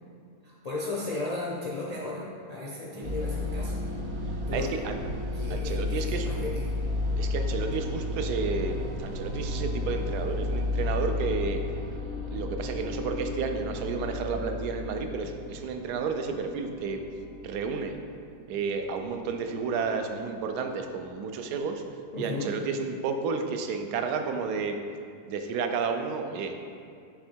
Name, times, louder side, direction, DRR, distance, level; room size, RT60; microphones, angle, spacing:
voice 1, 0.4-3.7 4.5-4.7 5.3-6.6 22.1-22.5, left 3 dB, 65° left, -5 dB, 0.3 m, -35 dB
sound 1, 3.0-21.4, left 2 dB, 60° right, 0.5 m, -33 dB
voice 2, 4.5-5.0 5.5-6.3 7.2-11.6 12.3-17.0 17.4-17.9 18.5-21.8 22.2-24.8 25.3-26.6, right 5 dB, 85° right, 5 dB, 1.1 m, -31 dB
6.6 x 3.5 x 4.4 m, 2.4 s
omnidirectional pair, 1.7 m